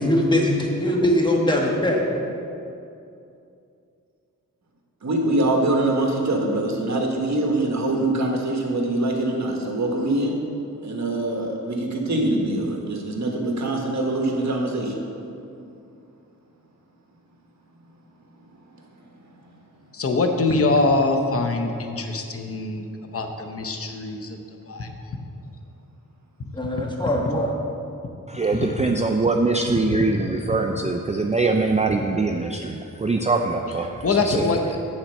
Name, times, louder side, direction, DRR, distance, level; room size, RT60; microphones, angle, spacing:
voice 1, 0.0-2.0 26.5-27.5, left 1 dB, 15° left, -1 dB, 1.4 m, -21 dB
voice 2, 5.0-10.3 10.8-15.0, right 2 dB, 55° right, 0 dB, 1.4 m, -24 dB
voice 3, 19.9-24.4 24.7-25.2 28.5-29.1 34.0-34.8, left 3 dB, 45° left, 5 dB, 0.8 m, -24 dB
voice 4, 28.3-33.9 34.3-34.4, right 3 dB, 20° right, 3 dB, 0.4 m, -23 dB
8.9 x 4.3 x 6.4 m, 2.6 s
cardioid pair, 70°, 33 cm